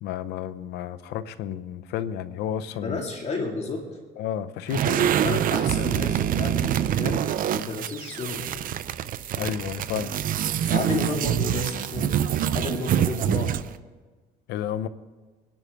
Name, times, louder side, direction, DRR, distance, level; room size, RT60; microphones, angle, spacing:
voice 1, 0.0-3.1 4.2-5.1 9.4-10.2 13.3-13.4 14.5-14.9, left 10 dB, 85° left, 13 dB, 0.8 m, -31 dB
voice 2, 2.8-3.9 5.2-8.6 10.6-12.2 12.5-13.5, left 3 dB, 40° left, 1 dB, 2.3 m, -32 dB
sound 1, 4.7-13.8, right 10 dB, 55° right, 0.6 m, -25 dB
24.0 x 10.5 x 3.6 m, 1.3 s
cardioid pair, 110°, 17 cm